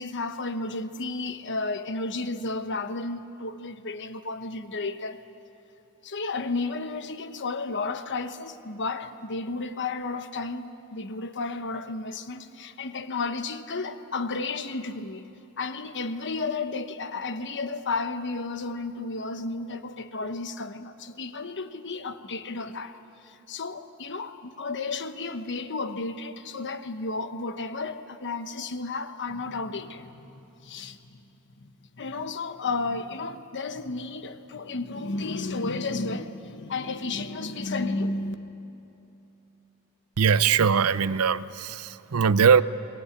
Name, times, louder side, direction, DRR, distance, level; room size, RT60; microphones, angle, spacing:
voice 1, 0.0-5.2 6.0-15.3 15.6-23.0 23.2-31.2 31.6-38.3, left 3 dB, 55° left, 1.1 m, -33 dB
voice 2, 40.2-42.6, right 6 dB, 70° right, 0.6 m, -21 dB
22.5 x 20.0 x 9.8 m
head